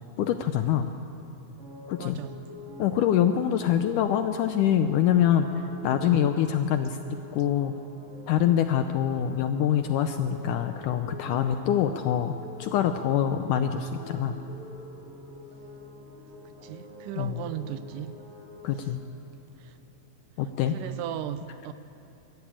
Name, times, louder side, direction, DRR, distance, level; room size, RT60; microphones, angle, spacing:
voice 1, 0.2-0.9 1.9-2.2 2.8-5.5 5.8-7.8 8.3-12.3 12.6-14.4 17.2-17.4 18.6-19.0 20.4-20.8, left 10 dB, 80° left, 8 dB, 1.9 m, -25 dB
sound 1, 1.6-18.7, left 2 dB, 50° right, 8.3 m, -45 dB
voice 2, 2.0-2.3 6.1-6.2 16.6-18.2 20.7-21.7, right 11 dB, 80° right, 12 dB, 2.0 m, -36 dB
23.0 x 14.0 x 8.8 m, 2.8 s
omnidirectional pair, 4.2 m